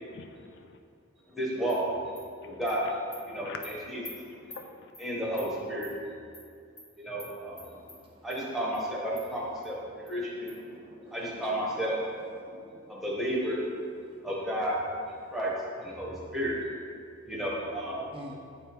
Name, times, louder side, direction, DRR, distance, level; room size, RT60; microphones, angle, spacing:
voice 1, 0.0-0.8 2.4-2.6 3.3-4.9, left 4 dB, 55° left, 6 dB, 0.3 m, -47 dB
voice 2, 1.4-1.9 2.4-3.0 3.2-4.0 5.0-5.9 7.0-7.8 8.2-9.8 10.0-10.5 11.1-12.0 12.9-13.6 14.2-14.9 15.3-16.6 17.3-18.1, equal, ahead, -5 dB, 1.0 m, -32 dB
Animal, 1.7-1.8 2.2-2.3 2.7-2.8 3.1-3.2 3.6-3.7 4.0-4.1 4.5-4.6 4.9-5.1 5.4-5.5 5.8-5.9 6.3-6.5 6.8-6.9 7.2-7.3 7.6-8.0 8.3-8.4 8.7-8.8 9.2-9.3 9.6-9.7 10.1-10.2 10.5-10.6, left 2 dB, 25° left, 1.3 m, -46 dB
voice 3, 7.8-8.1 10.1-10.2 10.7-11.5 12.4-13.0 18.1-18.4, equal, 25° right, -1 dB, 0.5 m, -48 dB
7.9 x 3.4 x 4.4 m, 2.3 s
head